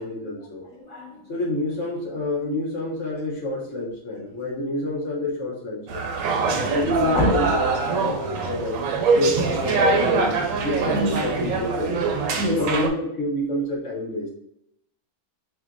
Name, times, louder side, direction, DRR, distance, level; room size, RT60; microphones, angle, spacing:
voice 1, 0.0-0.7 1.3-6.1 6.6-8.8 9.2-12.0 12.5-14.3, left 2 dB, 55° left, -2 dB, 1.0 m, -28 dB
voice 2, 0.7-1.3 4.2-4.3 7.1-7.5 10.9-11.2 12.3-12.7, equal, 25° right, -7 dB, 0.7 m, -26 dB
sound 1, 5.9-12.9, right 4 dB, 70° right, 0.9 m, -23 dB
4.6 x 3.6 x 2.4 m, 0.80 s
omnidirectional pair, 1.7 m